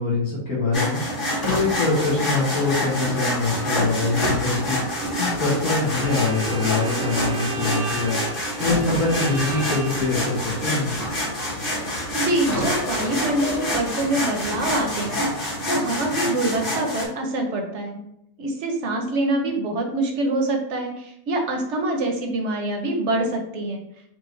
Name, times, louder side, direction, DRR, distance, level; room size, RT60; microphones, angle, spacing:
voice 1, 0.0-4.8 5.2-8.2 8.6-10.9, left 3 dB, 75° left, -7 dB, 1.6 m, -24 dB
sound 1, 0.7-17.0, left 1 dB, 40° left, 1.4 m, -27 dB
Car, 1.3-16.7, equal, 20° left, 0.6 m, -33 dB
Bowed string instrument, 5.8-10.5, right 5 dB, 90° right, 1.4 m, -35 dB
voice 2, 11.8-18.0 18.4-23.8, right 2 dB, 60° right, 3 dB, 0.9 m, -25 dB
4.7 x 2.5 x 3.1 m, 0.77 s
omnidirectional pair, 1.5 m